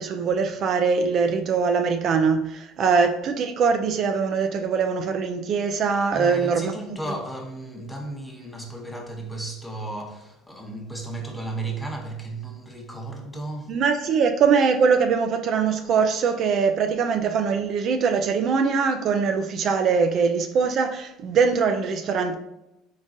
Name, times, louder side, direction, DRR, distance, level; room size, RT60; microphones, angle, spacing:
voice 1, 0.0-6.7 13.7-22.4, right 5 dB, 50° right, 0.3 m, -22 dB
voice 2, 6.1-13.8, right 2 dB, 5° left, 0.8 m, -34 dB
3.7 x 3.7 x 2.6 m
supercardioid pair, 105°, 0 cm